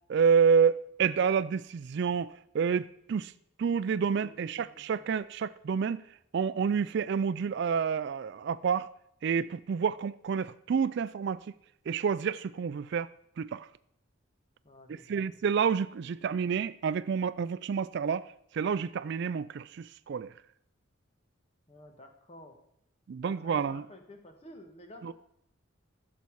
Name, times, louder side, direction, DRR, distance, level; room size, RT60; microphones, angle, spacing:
voice 1, 0.1-3.3 3.6-6.0 6.3-8.9 9.2-11.4 11.9-13.1 13.4-13.7 14.9-18.3 18.5-20.3 23.1-23.8 25.0-25.1, right 6 dB, 55° right, 0.3 m, -29 dB
voice 2, 4.2-5.1 14.6-15.4 16.1-16.2 21.7-22.6 23.2-25.1, left 1 dB, 30° left, 1.4 m, -52 dB
14.5 x 7.0 x 4.7 m
head